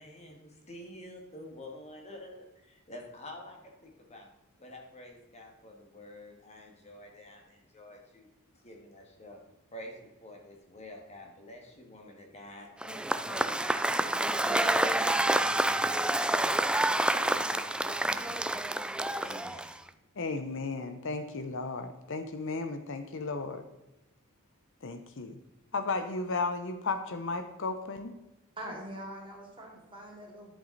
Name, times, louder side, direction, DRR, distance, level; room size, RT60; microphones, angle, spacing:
voice 1, 0.0-4.3 4.6-8.3 8.6-9.4 9.7-13.8 14.3-15.1 15.4-16.6 17.1-18.6 19.2-19.8, left 1 dB, 30° left, 1 dB, 1.8 m, -48 dB
Cheering / Applause / Crowd, 12.8-19.9, right 1 dB, 5° right, 0.3 m, -28 dB
voice 2, 20.2-23.6 24.8-25.4 25.7-28.1, left 3 dB, 60° left, 9 dB, 0.8 m, -34 dB
voice 3, 28.6-30.5, right 1 dB, 25° right, -1 dB, 3.0 m, -43 dB
11.0 x 8.3 x 4.1 m, 0.99 s
head